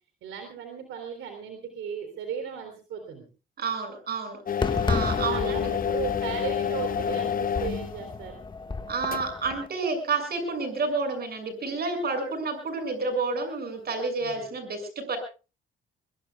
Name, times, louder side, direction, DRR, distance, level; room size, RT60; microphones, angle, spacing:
voice 1, 0.2-3.3 5.3-8.4 14.2-14.4, right 7 dB, 85° right, 6 dB, 3.6 m, -36 dB
voice 2, 3.6-5.7 8.9-15.2, right 4 dB, 50° right, 7 dB, 6.8 m, -30 dB
sound 1, 4.5-8.1 9.1-9.2, left 8 dB, 45° left, 0.8 m, -28 dB
Fireworks, 4.6-9.7, left 4 dB, 25° left, 1.8 m, -33 dB
24.0 x 22.0 x 2.4 m, 0.34 s
cardioid pair, 90°, 20 cm